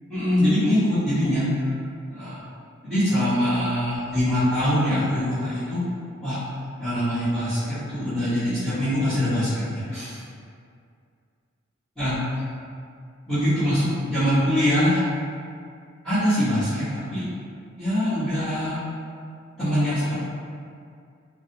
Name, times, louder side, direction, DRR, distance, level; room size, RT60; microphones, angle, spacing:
voice 1, 0.1-1.5 2.1-2.4 2.8-5.8 6.2-6.4 6.8-10.2 12.0-12.2 13.3-15.0 16.0-17.2 17.8-18.8 19.6-20.1, equal, 5° left, -19 dB, 1.2 m, -23 dB
3.5 x 2.2 x 2.8 m, 2.3 s
head